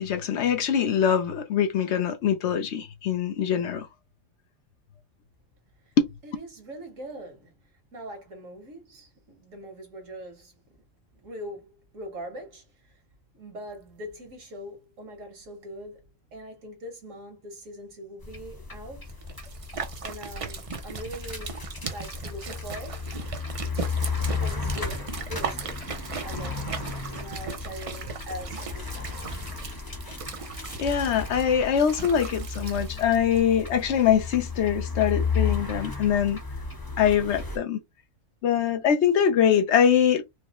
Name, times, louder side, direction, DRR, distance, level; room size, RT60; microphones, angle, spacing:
voice 1, 0.0-3.9 6.0-6.1 30.8-36.4 37.0-37.8 38.4-40.2, left 8 dB, 65° left, 0.9 m, -23 dB
voice 2, 6.2-10.6 11.1-12.9 13.3-19.2 20.0-21.6 21.9-23.0 24.2-25.7 26.2-29.0, equal, 85° right, 1.7 m, -42 dB
sound 1, 18.2-37.6, left 5 dB, 20° left, 0.8 m, -34 dB
sound 2, 19.1-33.4, right 5 dB, 55° right, 0.4 m, -37 dB
4.6 x 2.1 x 2.9 m
omnidirectional pair, 1.3 m